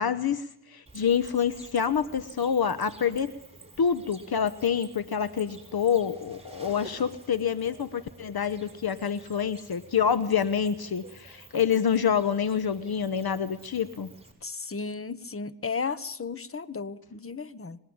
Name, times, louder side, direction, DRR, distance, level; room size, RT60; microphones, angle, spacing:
voice 1, 0.0-3.4 3.8-14.1, left 7 dB, 55° left, 14 dB, 1.1 m, -27 dB
Cricket, 0.9-14.3, right 2 dB, 15° right, 7.8 m, -50 dB
voice 2, 14.4-17.8, left 4 dB, 30° left, 15 dB, 1.4 m, -34 dB
26.0 x 20.0 x 8.8 m, 0.72 s
cardioid pair, 60°, 44 cm